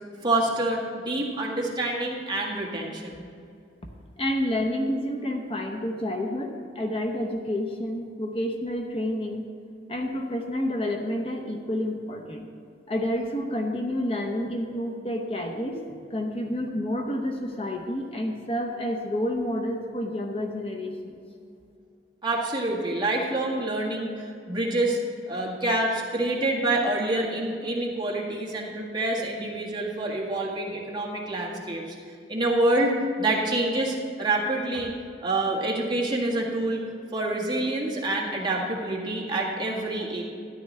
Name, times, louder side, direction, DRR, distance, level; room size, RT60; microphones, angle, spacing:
voice 1, 0.2-3.2 22.2-25.0 25.3-31.9 32.3-34.9 35.2-36.8 37.1-40.2, right 2 dB, 25° right, -3 dB, 1.7 m, -27 dB
voice 2, 4.2-9.5 9.9-12.4 12.9-15.8 16.1-21.2, left 1 dB, 35° left, 2 dB, 0.8 m, -29 dB
13.0 x 10.5 x 3.3 m, 2.4 s
head